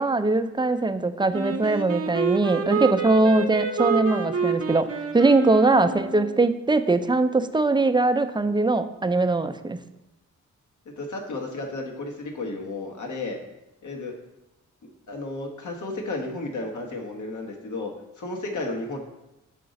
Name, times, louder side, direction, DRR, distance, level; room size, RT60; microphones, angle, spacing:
voice 1, 0.0-9.8, right 2 dB, 15° right, 9 dB, 0.5 m, -21 dB
Wind instrument woodwind instrument, 1.3-6.4, right 5 dB, 50° right, 0.8 m, -28 dB
voice 2, 10.8-13.4 13.8-14.1 14.8-17.9 18.2-19.0, left 2 dB, 70° left, 1 dB, 1.3 m, -33 dB
5.7 x 3.8 x 5.2 m, 0.94 s
cardioid pair, 50°, 31 cm